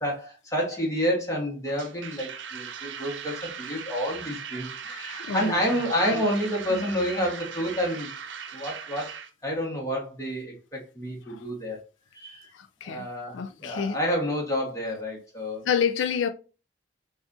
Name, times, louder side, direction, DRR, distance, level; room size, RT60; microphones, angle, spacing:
voice 1, 0.0-8.1 8.5-9.1 9.4-11.8 12.1-12.5 12.8-15.6, equal, 15° left, 1.3 m, -29 dB
sound 1, 1.7-9.3, right 7 dB, 80° right, 0.6 m, -39 dB
voice 2, 5.2-5.6 5.9-6.2 6.7-6.8 11.3-11.4 12.5-13.1 13.3-14.0 15.7-16.3, left 7 dB, 85° left, 0.4 m, -29 dB
5.9 x 2.5 x 2.6 m
head